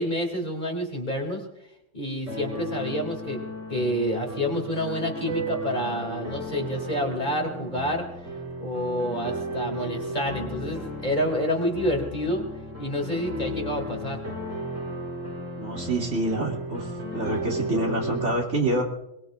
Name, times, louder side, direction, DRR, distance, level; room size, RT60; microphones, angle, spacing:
voice 1, 0.0-1.4 1.9-3.4 3.7-8.0 8.6-12.4 12.8-14.2, equal, 35° left, 2 dB, 2.7 m, -28 dB
sound 1, 2.3-18.2, equal, 80° right, 6.9 m, -34 dB
voice 2, 15.6-16.9 17.1-18.8, right 1 dB, 65° right, -1 dB, 3.2 m, -26 dB
22.5 x 22.0 x 2.5 m, 0.87 s
omnidirectional pair, 1.3 m